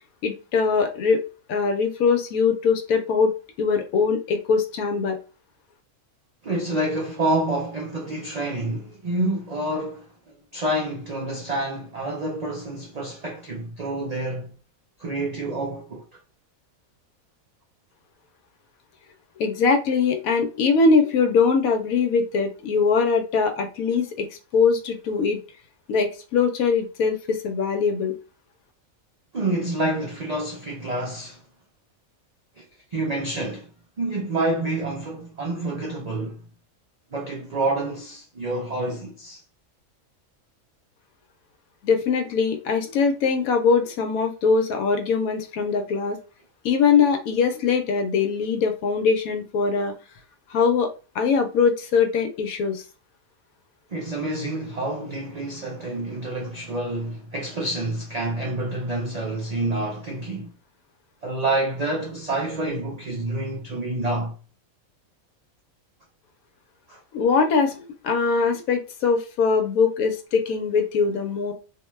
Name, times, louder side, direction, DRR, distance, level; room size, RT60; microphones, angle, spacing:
voice 1, 0.2-1.2 1.5-3.3 3.6-5.2 19.4-24.3 24.5-25.4 25.9-28.2 41.8-46.2 46.6-49.9 50.5-50.9 51.1-52.8 67.1-71.5, left 5 dB, 80° left, 1.0 m, -22 dB
voice 2, 6.4-10.1 10.5-14.5 15.0-16.0 29.3-31.4 32.9-33.7 34.0-36.4 37.1-39.4 53.9-60.5 61.2-64.3 66.9-67.0, right 2 dB, 85° right, 0.3 m, -28 dB
2.5 x 2.1 x 3.1 m
omnidirectional pair, 1.5 m